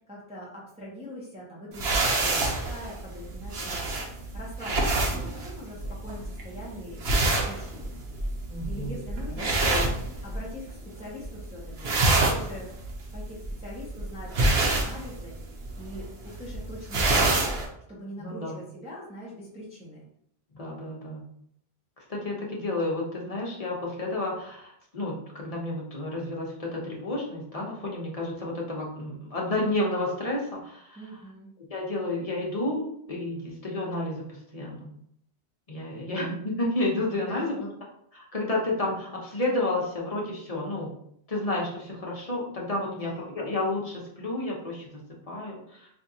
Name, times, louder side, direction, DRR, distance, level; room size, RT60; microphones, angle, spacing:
voice 1, 0.1-7.0 7.4-7.9 8.6-9.9 10.2-11.9 12.2-12.7 13.1-15.4 15.7-17.4 17.9-20.0 31.0-31.5 37.3-37.7 42.9-43.3, equal, 10° right, -6 dB, 0.6 m, -42 dB
sound 1, 1.7-10.7 11.0-11.4 11.7-17.6, right 2 dB, 85° right, 0.9 m, -27 dB
voice 2, 8.5-8.9 9.5-9.8 18.2-18.6 20.5-21.2 22.1-31.0 31.7-32.8 33.1-34.9 35.7-37.5 38.1-40.9 41.3-45.9, left 2 dB, 40° left, -2 dB, 0.8 m, -31 dB
3.6 x 2.6 x 2.7 m, 0.70 s
omnidirectional pair, 1.0 m